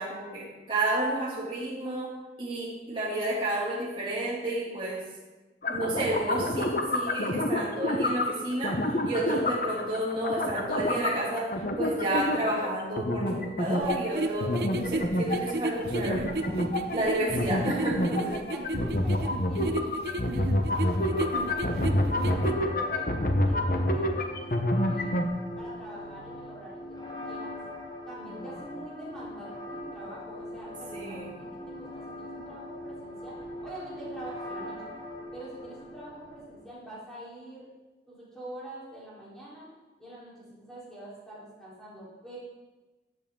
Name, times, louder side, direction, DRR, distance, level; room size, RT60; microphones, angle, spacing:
voice 1, 0.0-2.1 2.4-5.0 5.7-16.6 16.9-18.3 30.9-31.3, right 1 dB, 30° right, -6 dB, 2.7 m, -31 dB
sound 1, 5.6-25.3, left 1 dB, 50° left, 0.9 m, -28 dB
sound 2, 13.8-22.5, right 1 dB, 70° right, 0.7 m, -34 dB
voice 2, 18.3-21.0 21.6-25.1 25.6-26.8 27.2-27.5 28.1-31.3 31.7-34.8 35.3-37.7 38.1-39.7 40.0-42.4, right 1 dB, 5° left, -9 dB, 4.1 m, -45 dB
sound 3, 20.7-36.7, left 1 dB, 25° left, 1.9 m, -41 dB
14.0 x 8.1 x 3.8 m, 1.2 s
head